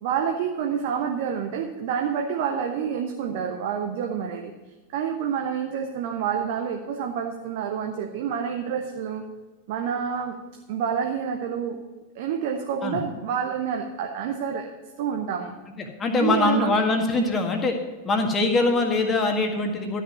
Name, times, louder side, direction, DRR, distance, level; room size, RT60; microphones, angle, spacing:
voice 1, 0.0-4.5 4.9-9.2 9.7-10.4 10.7-11.8 12.1-14.7 15.0-15.5 16.2-16.8, right 7 dB, 50° right, 4 dB, 0.9 m, -28 dB
voice 2, 15.8-17.8 18.0-20.0, left 2 dB, 20° left, 3 dB, 1.8 m, -23 dB
13.0 x 6.0 x 6.9 m, 1.3 s
figure-of-eight pair, 90°, 0 cm